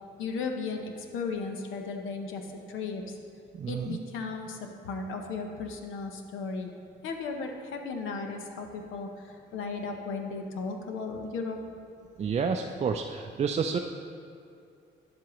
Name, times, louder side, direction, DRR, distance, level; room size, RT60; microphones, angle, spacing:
voice 1, 0.2-3.0 3.7-6.7 7.0-11.6, left 4 dB, 85° left, 4 dB, 0.8 m, -35 dB
voice 2, 3.5-4.0 12.2-13.8, right 6 dB, 35° right, 3 dB, 0.4 m, -29 dB
10.0 x 7.5 x 3.0 m, 2.5 s
cardioid pair, 90°, 20 cm